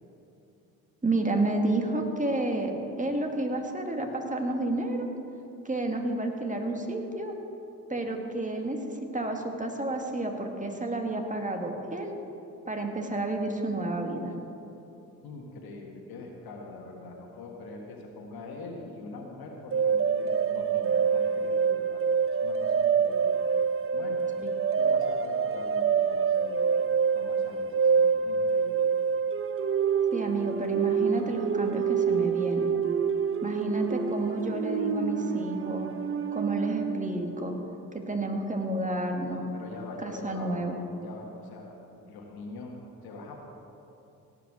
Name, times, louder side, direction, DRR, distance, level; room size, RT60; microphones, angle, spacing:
voice 1, 1.0-5.1 5.7-7.3 7.9-8.8 9.1-12.2 12.7-14.3 30.1-32.8 33.4-35.9 36.3-37.6 37.9-39.5 40.0-40.8, right 2 dB, 20° right, 3 dB, 1.9 m, -30 dB
voice 2, 15.2-23.4 23.9-24.2 24.8-26.8 27.1-28.9 39.5-40.5 41.0-41.8 42.1-43.4, left 3 dB, 70° left, 1 dB, 1.7 m, -43 dB
sound 1, 19.7-37.1, right 6 dB, 35° right, 0.7 m, -26 dB
17.0 x 5.8 x 6.2 m, 2.8 s
supercardioid pair, 50°, 38 cm